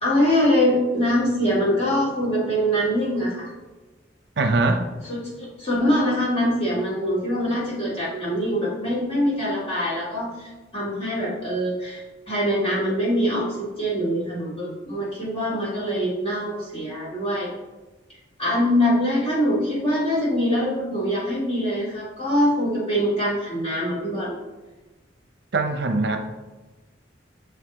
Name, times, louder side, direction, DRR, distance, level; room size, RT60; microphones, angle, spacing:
voice 1, 0.0-3.5 5.1-17.5 18.4-24.4, equal, 30° left, -7 dB, 2.1 m, -23 dB
voice 2, 4.4-4.9 25.5-26.2, right 3 dB, 65° right, 6 dB, 0.6 m, -21 dB
6.6 x 4.7 x 3.6 m, 1.2 s
head